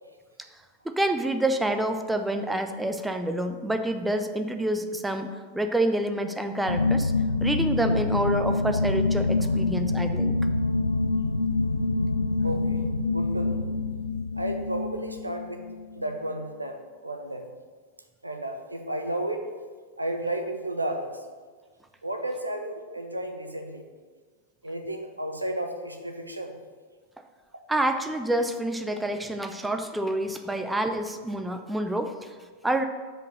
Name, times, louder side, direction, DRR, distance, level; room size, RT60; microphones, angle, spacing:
voice 1, 0.8-7.1 7.4-10.3 27.7-32.3 32.6-32.9, right 1 dB, 5° right, 6 dB, 0.6 m, -28 dB
sound 1, 6.7-16.1, left 3 dB, 80° left, 0.4 m, -26 dB
voice 2, 12.4-12.8 13.1-13.7 14.4-15.6 15.9-16.8 17.0-17.5 18.2-19.5 20.0-21.2 22.0-23.8 24.6-26.6, right 1 dB, 85° right, 5 dB, 0.8 m, -32 dB
6.4 x 5.3 x 6.4 m, 1.5 s
figure-of-eight pair, 90°, 0 cm